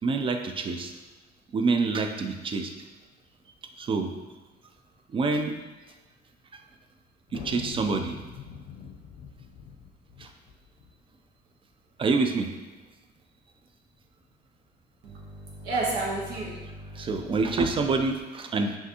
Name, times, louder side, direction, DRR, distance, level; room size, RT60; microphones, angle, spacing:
voice 1, 0.0-0.9 1.5-2.7 3.8-4.1 5.1-5.6 7.3-8.2 10.2-10.3 12.0-12.5 16.9-18.8, right 4 dB, 30° right, 5 dB, 0.4 m, -26 dB
sound 1, 7.3-10.9, left 6 dB, 65° left, 0.6 m, -43 dB
voice 2, 15.0-17.8, right 2 dB, 80° right, -5 dB, 1.1 m, -33 dB
5.6 x 2.6 x 2.8 m, 1.2 s
cardioid pair, 110°, 17 cm